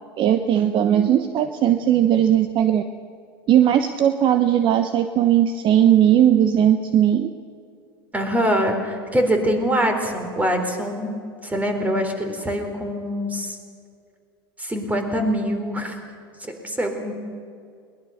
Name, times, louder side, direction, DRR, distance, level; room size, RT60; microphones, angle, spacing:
voice 1, 0.2-2.8 3.5-7.3, right 10 dB, 40° right, 9 dB, 1.1 m, -18 dB
voice 2, 8.1-11.1 11.4-13.6 14.6-15.9 16.4-17.1, equal, 10° right, 5 dB, 4.0 m, -24 dB
22.0 x 20.0 x 6.6 m, 2.3 s
hypercardioid pair, 85°, 12 cm